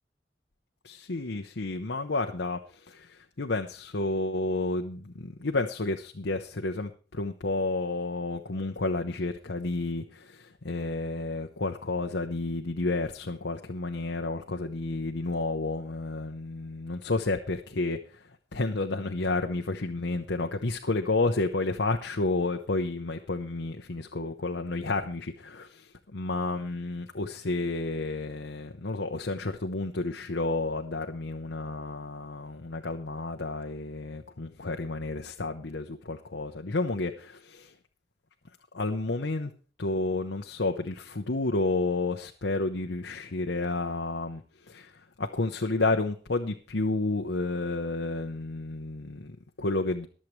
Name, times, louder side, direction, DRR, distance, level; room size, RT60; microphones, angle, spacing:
voice 1, 0.8-18.0 18.5-37.7 38.7-39.5 39.8-44.9 45.2-50.1, left 2 dB, 90° left, 4 dB, 0.9 m, -31 dB
22.5 x 7.6 x 3.2 m, 0.39 s
head